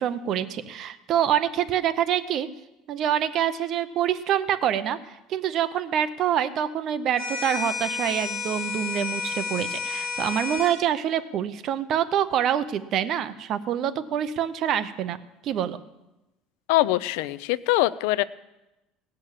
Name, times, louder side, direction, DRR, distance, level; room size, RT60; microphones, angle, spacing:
voice 1, 0.0-2.5 2.9-15.2 15.4-15.8, right 10 dB, 35° right, 12 dB, 0.6 m, -26 dB
sound 1, 7.2-10.8, left 5 dB, 5° left, 4.6 m, -31 dB
voice 2, 16.7-18.2, left 17 dB, 80° left, 18 dB, 0.5 m, -23 dB
18.0 x 6.7 x 7.4 m, 0.97 s
cardioid pair, 175°, 0 cm